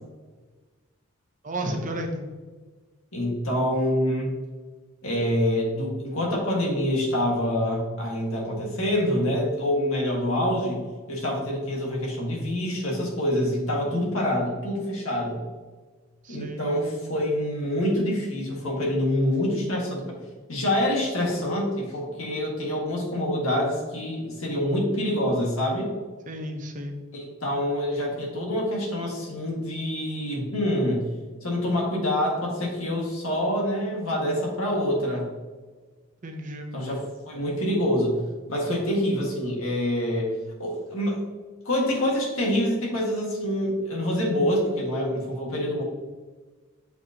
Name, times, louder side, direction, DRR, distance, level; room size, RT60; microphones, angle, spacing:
voice 1, 1.4-2.2 16.2-16.6 26.3-27.0 36.2-36.7, right 1 dB, 35° right, 3 dB, 0.7 m, -32 dB
voice 2, 3.1-4.3 5.0-10.8 11.1-15.4 16.3-20.2 20.5-25.9 27.1-31.1 31.4-35.3 36.7-38.2 38.5-41.2 41.7-45.8, left 1 dB, 75° left, -2 dB, 1.8 m, -26 dB
6.7 x 5.2 x 2.9 m, 1.4 s
head